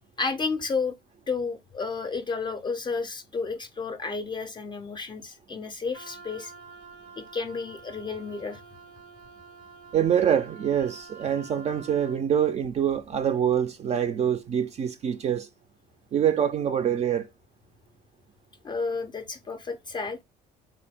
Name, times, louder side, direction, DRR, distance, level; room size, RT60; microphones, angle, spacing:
voice 1, 0.2-1.0 1.3-6.5 7.2-8.6 18.6-20.2, left 4 dB, 25° left, 0.5 m, -31 dB
Wind instrument woodwind instrument, 5.9-12.2, right 4 dB, 80° right, 0.7 m, -48 dB
voice 2, 9.9-15.5 16.1-17.3, right 9 dB, 40° right, 0.4 m, -25 dB
3.4 x 2.2 x 3.4 m
cardioid pair, 110°, 17 cm